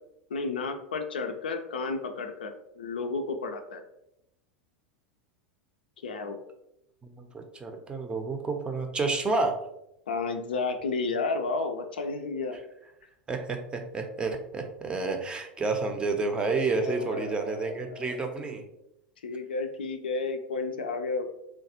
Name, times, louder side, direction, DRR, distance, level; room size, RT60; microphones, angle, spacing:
voice 1, 0.3-3.8 6.0-6.4 10.1-12.6 16.7-18.4 19.2-21.3, left 3 dB, 75° left, 6 dB, 0.3 m, -32 dB
voice 2, 7.0-9.6 13.3-18.6, right 3 dB, 20° right, 4 dB, 0.5 m, -30 dB
3.1 x 2.3 x 2.7 m, 0.83 s
figure-of-eight pair, 85°, 5 cm